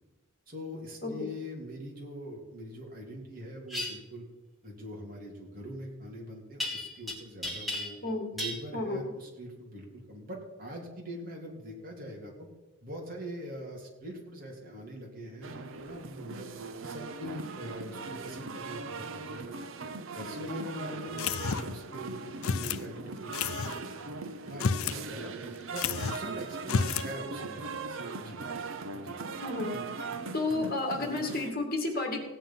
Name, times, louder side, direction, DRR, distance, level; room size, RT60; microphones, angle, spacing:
voice 1, 0.5-4.2 4.6-8.0 8.3-12.5 12.8-16.5 16.8-19.5 20.1-23.6 24.4-25.3 25.7-28.4 29.0-29.2, equal, 40° right, -1 dB, 3.1 m, -42 dB
sound 1, 3.7-3.9 6.6-7.1 7.4-8.1 8.4-8.6, left 1 dB, ahead, 2.5 m, -34 dB
voice 2, 8.7-9.0 29.4-29.7 30.0-32.2, left 2 dB, 45° left, 2 dB, 2.3 m, -32 dB
sound 2, 15.4-31.5, right 4 dB, 65° right, 0.9 m, -40 dB
sound 3, 21.2-21.8 22.4-22.8 23.3-23.8 24.5-25.0 25.3-25.4 25.8-26.3 26.6-27.1, left 5 dB, 75° left, 0.5 m, -31 dB
17.0 x 9.1 x 5.7 m, 1.1 s
head